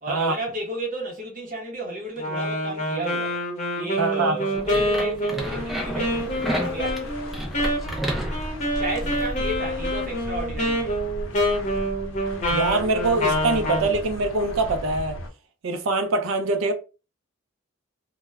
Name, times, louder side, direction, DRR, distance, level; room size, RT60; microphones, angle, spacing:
voice 1, 0.0-3.4 3.7-7.3 8.7-11.0, right 1 dB, 40° right, 0.6 m, -33 dB
Wind instrument woodwind instrument, 2.2-13.9, equal, 35° left, 0.7 m, -27 dB
voice 2, 4.0-4.4 12.5-15.2 15.6-16.7, right 3 dB, 80° right, 0.4 m, -23 dB
sound 1, 4.5-9.3, right 1 dB, ahead, 0.4 m, -32 dB
sound 2, 5.4-15.3, left 1 dB, 80° left, 0.6 m, -35 dB
2.1 x 2.1 x 3.3 m
head